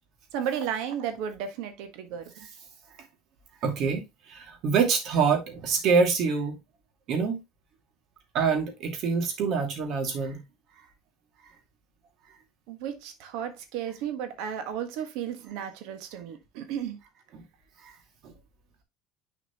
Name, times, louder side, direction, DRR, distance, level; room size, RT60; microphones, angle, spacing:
voice 1, 0.3-2.2 12.7-17.0, right 8 dB, 75° right, 1.5 m, -33 dB
voice 2, 3.6-4.0 4.3-6.6 7.1-7.4 8.3-10.4 17.3-17.4 18.2-18.3, right 5 dB, 55° right, 2.4 m, -25 dB
6.9 x 5.0 x 3.0 m
supercardioid pair, 120°, 0 cm